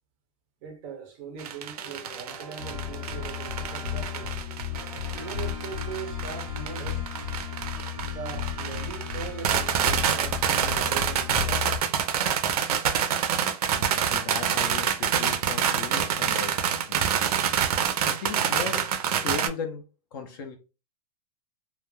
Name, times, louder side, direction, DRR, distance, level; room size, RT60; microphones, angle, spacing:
voice 1, 0.6-4.4 5.1-7.1 8.1-11.8, right 7 dB, 25° right, 0.5 m, -40 dB
sound 1, 1.4-19.5, right 8 dB, 80° right, 0.5 m, -27 dB
sound 2, 1.7-4.3 4.7-11.3, right 2 dB, ahead, 0.8 m, -46 dB
sound 3, 2.6-11.8, left 10 dB, 85° left, 0.8 m, -34 dB
voice 2, 13.8-17.2 18.0-19.8 20.1-20.6, left 5 dB, 35° left, 0.4 m, -37 dB
2.3 x 2.1 x 3.0 m
supercardioid pair, 175°, 19 cm